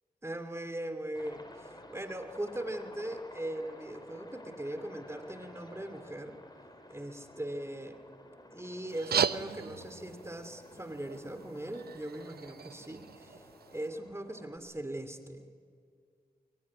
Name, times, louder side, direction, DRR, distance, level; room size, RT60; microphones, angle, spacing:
voice 1, 0.2-6.4 6.9-8.0 8.5-13.3 13.7-15.5, right 1 dB, 15° right, 8 dB, 2.6 m, -40 dB
Aircraft, 1.1-14.6, left 1 dB, 25° left, 4.4 m, -52 dB
sound 1, 8.9-13.9, right 7 dB, 85° right, 0.7 m, -37 dB
25.0 x 23.0 x 9.6 m, 2.2 s
cardioid pair, 60°, 16 cm